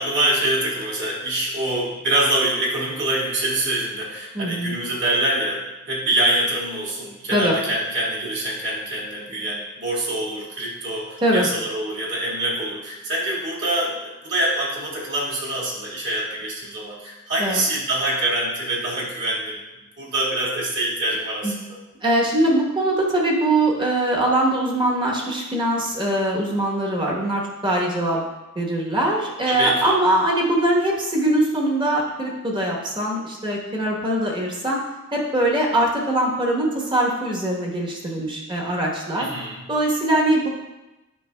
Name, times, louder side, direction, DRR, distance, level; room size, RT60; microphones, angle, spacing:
voice 1, 0.0-19.6 20.0-21.5 29.5-29.9 39.2-39.6, right 1 dB, 50° right, -5 dB, 1.8 m, -25 dB
voice 2, 4.3-4.8 7.3-7.5 11.2-11.5 17.4-17.6 21.4-21.5 22.0-28.2 28.5-34.8 35.1-39.3 39.7-40.5, right 1 dB, 20° right, -2 dB, 1.0 m, -22 dB
8.5 x 5.9 x 2.2 m, 1.0 s
head